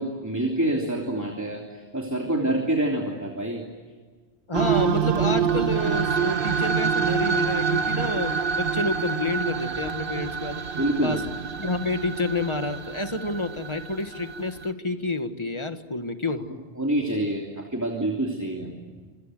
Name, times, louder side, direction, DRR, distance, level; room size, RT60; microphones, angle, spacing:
voice 1, 0.0-3.7 10.8-11.5 16.8-18.7, right 1 dB, 15° right, 0 dB, 3.1 m, -27 dB
voice 2, 4.5-10.6 11.0-11.2 11.6-16.5, left 2 dB, 25° left, 8 dB, 1.7 m, -29 dB
sound 1, 4.5-14.7, right 6 dB, 55° right, 1.4 m, -26 dB
27.0 x 27.0 x 7.8 m, 1.5 s
omnidirectional pair, 1.1 m